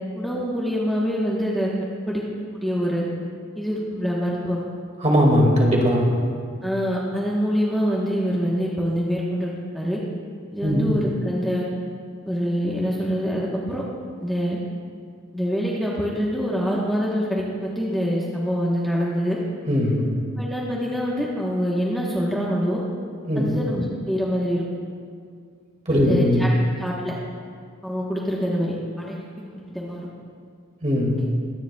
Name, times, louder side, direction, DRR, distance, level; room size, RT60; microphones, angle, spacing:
voice 1, 0.1-1.7 2.1-2.2 2.5-3.0 3.5-4.6 6.6-10.0 10.5-11.7 12.2-13.8 14.2-14.6 15.3-19.4 20.4-22.8 23.3-24.6 25.9-26.5 26.8-27.1 27.8-30.1 31.2-31.3, equal, ahead, -5 dB, 1.1 m, -25 dB
voice 2, 5.0-6.1 10.6-10.9 19.7-20.1 23.3-23.5 25.9-26.5 30.8-31.2, equal, 35° right, -2 dB, 2.0 m, -19 dB
22.5 x 10.5 x 2.3 m, 2.2 s
head